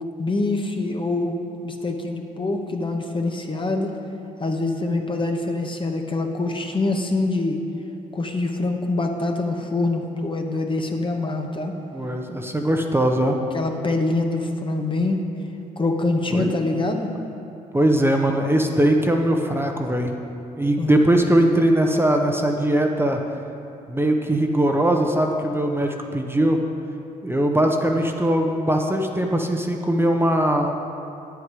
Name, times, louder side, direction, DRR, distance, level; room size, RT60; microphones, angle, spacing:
voice 1, 0.2-1.4 1.6-3.9 4.4-7.6 8.1-11.8 13.5-15.2 15.8-17.1 20.8-21.0, left 2 dB, 25° left, 3 dB, 1.1 m, -25 dB
voice 2, 11.9-13.4 16.3-16.5 17.7-20.1 20.6-23.2 23.9-26.6 27.2-30.7, right 1 dB, 10° right, 2 dB, 1.1 m, -20 dB
9.6 x 8.1 x 4.9 m, 2.8 s
hypercardioid pair, 50°, 19 cm